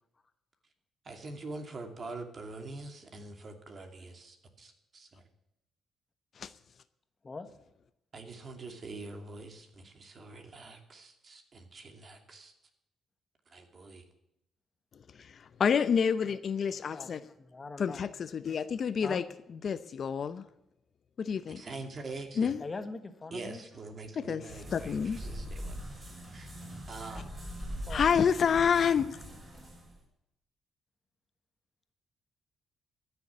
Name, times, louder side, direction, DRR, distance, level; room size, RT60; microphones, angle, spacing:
voice 1, 1.0-5.2 8.1-12.5 13.5-14.0 21.5-22.5 23.3-25.8 26.3-26.5 26.9-27.3, right 3 dB, 40° right, 5 dB, 2.6 m, -44 dB
voice 2, 15.6-17.2 17.8-19.2 19.6-20.4 21.2-21.6 22.4-22.6 24.2-24.4 24.7-25.2 27.9-29.2, left 7 dB, 50° left, 13 dB, 0.7 m, -28 dB
voice 3, 16.7-17.1 17.4-18.0 19.0-19.2 22.6-23.6 27.9-28.6, left 3 dB, 30° left, 9 dB, 1.3 m, -42 dB
sound 1, 24.5-30.0, equal, 20° right, 6.6 m, -42 dB
14.0 x 7.0 x 9.7 m, 0.84 s
cardioid pair, 90°, 0 cm